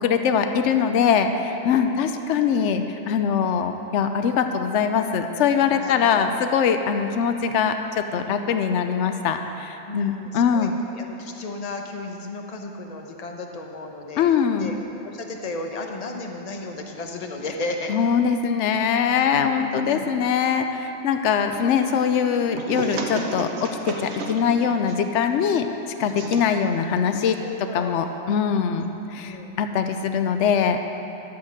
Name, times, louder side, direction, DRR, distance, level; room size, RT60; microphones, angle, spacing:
voice 1, 0.0-10.8 14.2-14.7 17.9-25.7 26.0-30.8, left 7 dB, 85° left, 7 dB, 0.9 m, -22 dB
voice 2, 5.7-6.3 9.9-14.7 15.0-17.9 19.1-20.1 27.4-28.0 28.8-28.9 29.1-29.5, left 2 dB, 35° left, 3 dB, 0.9 m, -34 dB
sound 1, 21.5-28.2, right 3 dB, 70° right, 1.1 m, -35 dB
12.5 x 5.1 x 7.3 m, 3.0 s
omnidirectional pair, 1.2 m